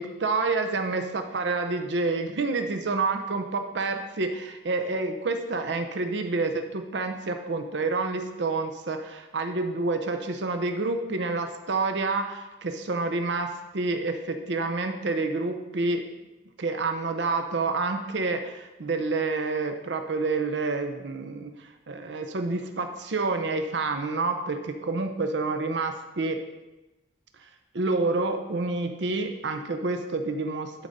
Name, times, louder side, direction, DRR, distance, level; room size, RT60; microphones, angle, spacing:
voice 1, 0.0-16.0 16.6-26.4 27.4-27.5 27.7-30.9, right 3 dB, 70° right, 6 dB, 0.7 m, -28 dB
11.0 x 4.0 x 5.3 m, 1.1 s
head